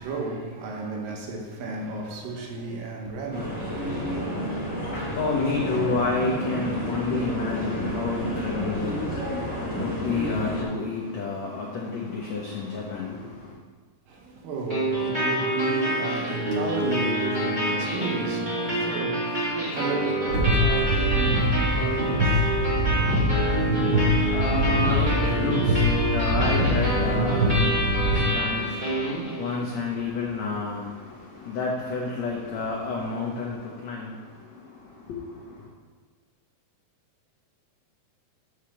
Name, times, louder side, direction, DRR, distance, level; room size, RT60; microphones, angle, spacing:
voice 1, 0.0-4.1 14.1-22.8, right 3 dB, 75° right, 2.5 m, -33 dB
sound 1, 3.3-10.6, equal, 5° left, 0.9 m, -30 dB
voice 2, 4.8-13.5 23.9-34.2 35.1-35.2, left 4 dB, 80° left, 1.5 m, -30 dB
sound 2, 14.7-29.7, right 1 dB, 15° right, 2.3 m, -27 dB
sound 3, 20.3-28.2, equal, 40° right, 2.8 m, -24 dB
7.2 x 5.0 x 7.1 m
omnidirectional pair, 4.4 m